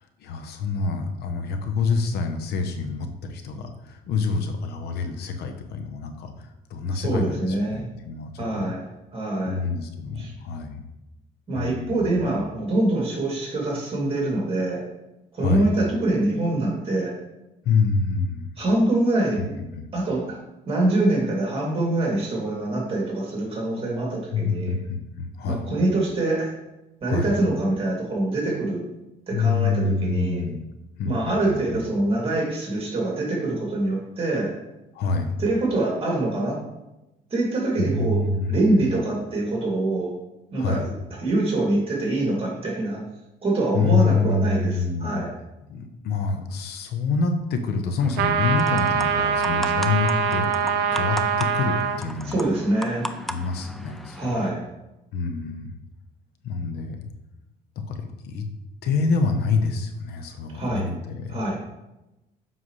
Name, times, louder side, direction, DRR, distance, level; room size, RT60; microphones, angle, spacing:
voice 1, 0.2-8.3 8.5-8.7 9.4-10.8 11.5-12.2 15.4-15.7 17.6-18.5 19.4-19.5 19.8-19.9 24.3-25.7 27.0-27.3 29.3-30.6 31.0-31.8 34.9-35.3 37.8-38.6 40.6-40.9 43.7-45.2 45.7-52.4 53.3-54.4 55.1-55.7 56.4-57.0 57.9-58.4 58.8-61.6, left 4 dB, 75° left, 6 dB, 0.9 m, -26 dB
voice 2, 6.9-7.9 8.4-8.8 9.1-9.6 10.2-10.3 11.5-14.8 15.3-17.1 18.6-19.4 19.9-20.4 20.7-24.8 25.5-26.5 27.0-28.8 29.3-30.4 31.0-34.5 35.4-36.6 37.3-38.2 38.5-40.1 40.5-40.9 41.2-43.0 43.4-45.3 52.2-53.1 54.2-54.6 60.5-60.9 61.3-61.6, right 2 dB, 35° right, -2 dB, 2.7 m, -24 dB
sound 1, 48.0-54.5, equal, ahead, 0.4 m, -37 dB
sound 2, 48.2-52.0, right 7 dB, 90° right, 0.6 m, -23 dB
7.5 x 5.7 x 3.2 m, 0.95 s
cardioid pair, 110°, 17 cm